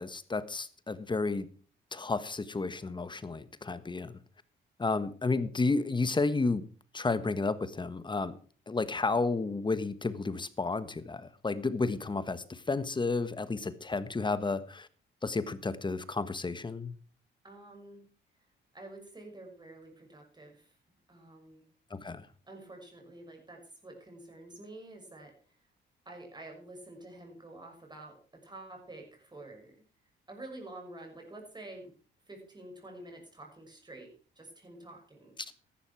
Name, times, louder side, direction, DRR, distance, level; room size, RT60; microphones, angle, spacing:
voice 1, 0.0-1.5 1.9-4.2 4.8-6.6 6.9-8.4 8.7-14.9 15.2-16.9 21.9-22.3, left 3 dB, 25° left, 14 dB, 1.4 m, -32 dB
voice 2, 17.4-18.1 18.7-20.7 21.1-21.7 22.4-25.3 26.0-29.7 30.3-31.9 32.3-34.1 34.4-35.3, right 2 dB, 20° right, 2 dB, 6.2 m, -48 dB
14.0 x 11.5 x 4.7 m, 0.41 s
cardioid pair, 90°, 20 cm